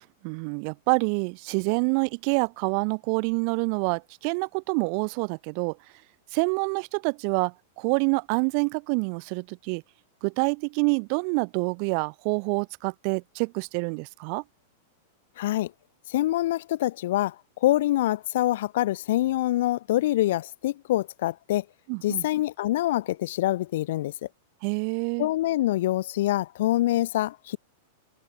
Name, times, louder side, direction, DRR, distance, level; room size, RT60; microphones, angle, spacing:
voice 1, 0.0-5.8 6.3-9.8 10.2-14.4 21.9-22.3 24.6-25.3, right 40 dB or more, 50° right, 0.8 m, -27 dB
voice 2, 15.4-15.7 16.1-17.4 17.6-21.6 22.0-24.1 25.2-27.6, left 15 dB, 70° left, 0.3 m, -25 dB
hypercardioid pair, 120°, 0 cm